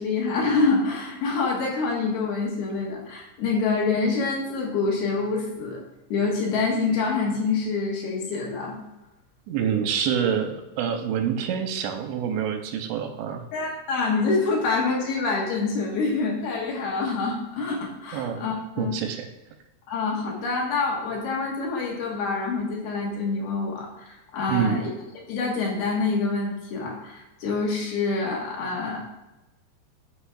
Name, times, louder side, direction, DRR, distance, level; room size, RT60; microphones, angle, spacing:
voice 1, 0.0-5.8 6.1-8.8 13.5-18.9 19.9-24.9 25.3-29.0, left 4 dB, 70° left, -2 dB, 3.2 m, -26 dB
voice 2, 9.5-13.4 18.1-18.4 18.8-19.3 24.5-24.8, right 8 dB, 90° right, 6 dB, 2.9 m, -26 dB
11.5 x 5.8 x 2.4 m, 1.0 s
omnidirectional pair, 5.1 m